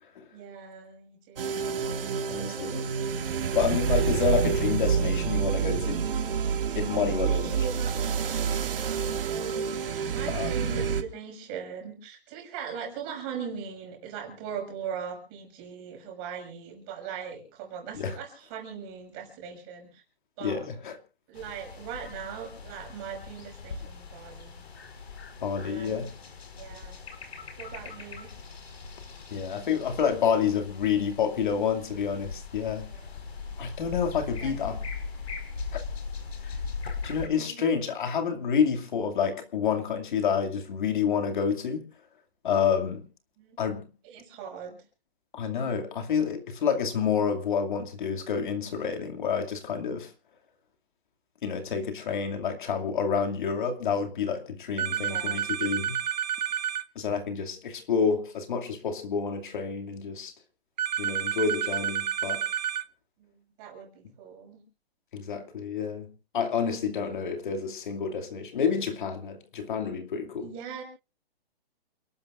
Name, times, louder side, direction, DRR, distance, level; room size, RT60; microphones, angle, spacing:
voice 1, 0.3-1.8 6.9-20.0 20.4-20.7 21.3-24.6 25.6-26.1 26.5-27.1 27.6-28.3 32.6-33.1 34.4-34.5 37.3-37.7 43.4-43.6 44.0-44.8 54.9-55.4 63.2-64.6 70.4-70.8, right 7 dB, 20° right, 6.1 m, -40 dB
sound 1, 1.4-11.0, right 7 dB, 60° right, 2.1 m, -28 dB
voice 2, 2.3-2.8 3.5-6.0 6.7-7.6 10.3-10.6 17.9-18.2 20.4-21.0 25.4-26.1 29.3-32.9 33.6-34.8 35.7-35.8 36.4-36.6 37.0-41.9 42.4-43.1 43.6-43.9 45.3-50.1 51.4-56.0 57.0-60.3 61.0-62.5 65.1-66.1 66.3-70.5, left 6 dB, 50° left, 2.5 m, -28 dB
sound 2, 21.3-37.3, left 5 dB, 80° left, 5.1 m, -40 dB
sound 3, 54.8-56.9 60.8-62.9, right 9 dB, 45° right, 0.7 m, -30 dB
29.0 x 12.5 x 2.6 m
hypercardioid pair, 170°, 31 cm